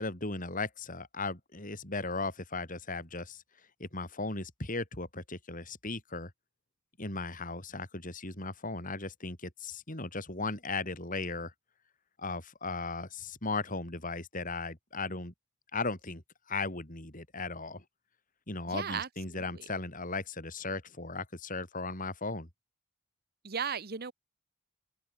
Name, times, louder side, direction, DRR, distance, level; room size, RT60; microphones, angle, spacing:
voice 1, 0.0-3.4 3.8-6.3 7.0-11.5 12.2-15.3 15.7-16.2 16.5-17.8 18.5-22.5, left 3 dB, 40° left, 4.3 m, -37 dB
voice 2, 18.7-19.1 19.3-19.4 23.4-24.1, right 6 dB, 45° right, 1.0 m, -35 dB
open air
head